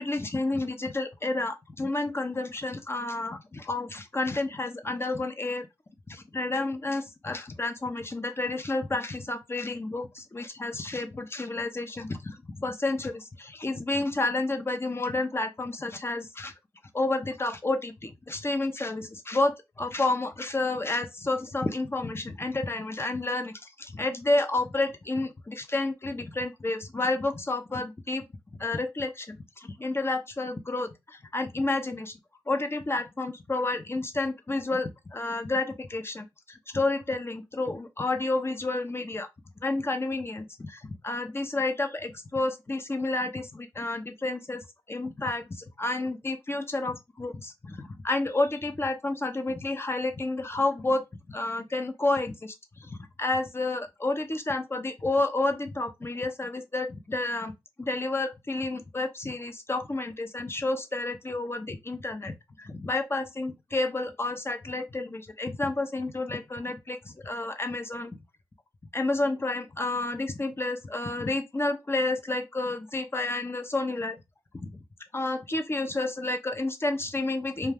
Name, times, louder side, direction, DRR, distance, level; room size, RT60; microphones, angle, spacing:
voice 1, 0.0-5.7 6.3-16.5 16.9-28.2 28.6-32.2 32.5-39.3 39.6-57.5 57.8-68.2 68.9-74.2 74.7-74.8 75.1-77.7, left 2 dB, 30° left, 0.6 m, -30 dB
2.2 x 2.2 x 3.3 m
supercardioid pair, 40°, 8 cm